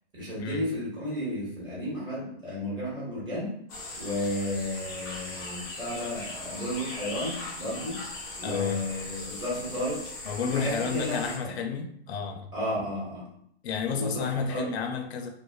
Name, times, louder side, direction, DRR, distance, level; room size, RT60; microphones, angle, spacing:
voice 1, 0.1-3.5 4.0-8.0 8.4-10.0 10.5-11.5 12.5-13.2 13.9-14.7, left 1 dB, 15° right, -8 dB, 1.0 m, -33 dB
sound 1, 3.7-11.4, left 2 dB, 20° left, 0.3 m, -39 dB
voice 2, 8.4-8.8 10.3-12.5 13.6-15.3, left 5 dB, 80° left, 5 dB, 0.5 m, -31 dB
2.4 x 2.2 x 2.3 m, 0.69 s
hypercardioid pair, 145°, 32 cm